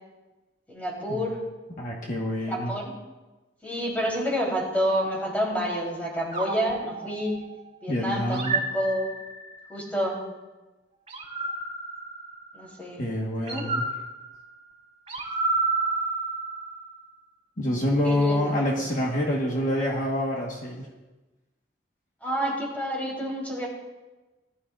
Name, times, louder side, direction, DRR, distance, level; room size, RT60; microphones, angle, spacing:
voice 1, 0.7-1.4 2.5-2.9 3.6-7.4 7.8-9.1 9.7-10.2 12.5-13.1 13.5-13.7 17.9-18.8 22.2-23.7, equal, 10° left, -3 dB, 3.6 m, -29 dB
voice 2, 1.8-2.7 7.9-8.6 13.0-13.8 17.6-20.9, left 1 dB, 45° left, -2 dB, 1.5 m, -27 dB
sound 1, 6.3-7.7 8.3-9.6 11.1-12.8 13.5-17.0, right 3 dB, 35° right, 4.0 m, -31 dB
19.5 x 12.0 x 2.5 m, 1.2 s
head